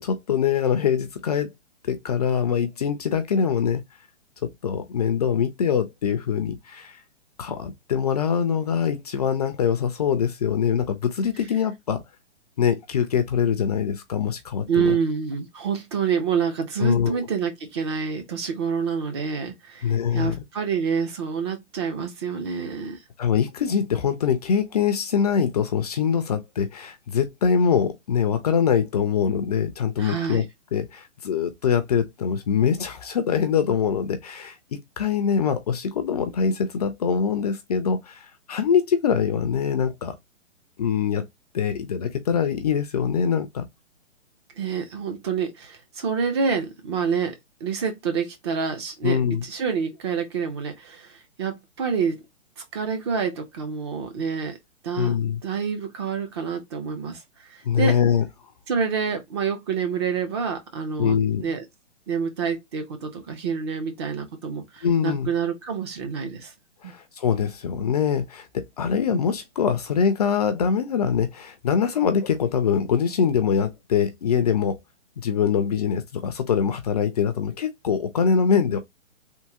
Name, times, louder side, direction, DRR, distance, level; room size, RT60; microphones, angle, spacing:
voice 1, 0.0-1.5 1.8-3.8 4.4-7.0 7.4-12.0 12.6-15.0 16.8-17.2 19.8-20.3 23.2-30.4 30.7-40.2 40.8-41.3 41.5-43.6 49.0-49.4 55.0-55.4 57.6-58.2 61.0-61.4 64.8-65.3 66.8-74.8 75.2-78.8, left 7 dB, 35° left, 0.5 m, -23 dB
voice 2, 14.7-23.0 30.0-30.4 44.6-52.2 52.6-54.6 54.8-55.2 55.4-58.0 58.7-61.6 62.1-66.5 66.8-66.9, right 6 dB, 20° right, 0.5 m, -27 dB
3.6 x 2.7 x 2.7 m
hypercardioid pair, 135°, 37 cm